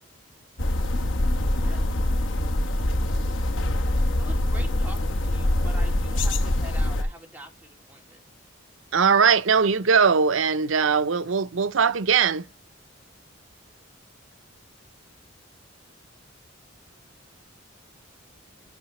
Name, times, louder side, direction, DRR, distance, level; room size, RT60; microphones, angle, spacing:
sound 1, 0.6-7.0, left 1 dB, 70° left, 1.0 m, -24 dB
voice 1, 4.2-8.2, right 1 dB, 10° right, 2.4 m, -44 dB
voice 2, 8.9-12.5, right 6 dB, 80° right, 0.6 m, -20 dB
11.5 x 5.6 x 3.0 m
head